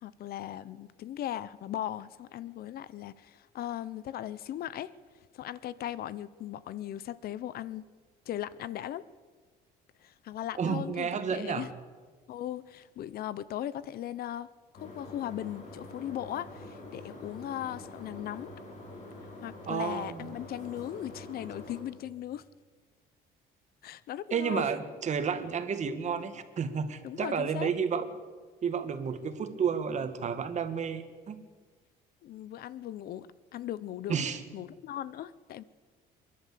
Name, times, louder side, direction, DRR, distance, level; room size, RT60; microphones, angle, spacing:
voice 1, 0.0-4.9 5.2-7.9 8.3-9.0 10.0-11.7 12.3-14.5 14.7-18.5 19.4-22.4 23.8-24.7 27.0-27.7 32.2-34.2 34.5-35.6, left 12 dB, 65° left, 18 dB, 0.8 m, -38 dB
voice 2, 10.6-11.7 19.7-20.4 24.3-28.1 28.6-31.4 34.1-34.4, right 6 dB, 45° right, 9 dB, 2.0 m, -31 dB
sound 1, 14.8-21.8, left 1 dB, 45° left, 7.1 m, -46 dB
27.0 x 11.0 x 8.5 m, 1.5 s
cardioid pair, 110°, 17 cm